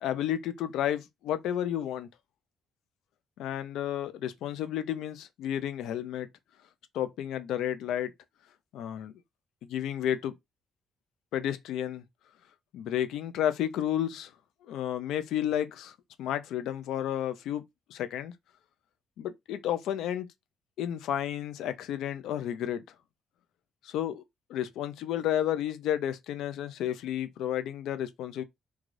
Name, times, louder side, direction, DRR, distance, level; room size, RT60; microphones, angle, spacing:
voice 1, 0.0-2.1 3.4-6.3 6.9-8.1 8.7-9.1 9.7-10.3 11.3-12.0 12.7-14.3 14.7-17.6 17.9-18.3 19.2-20.3 20.8-22.8 23.8-24.2 24.5-28.4, left 11 dB, 85° left, 0.4 m, -31 dB
3.2 x 2.3 x 2.5 m
cardioid pair, 85°, 0 cm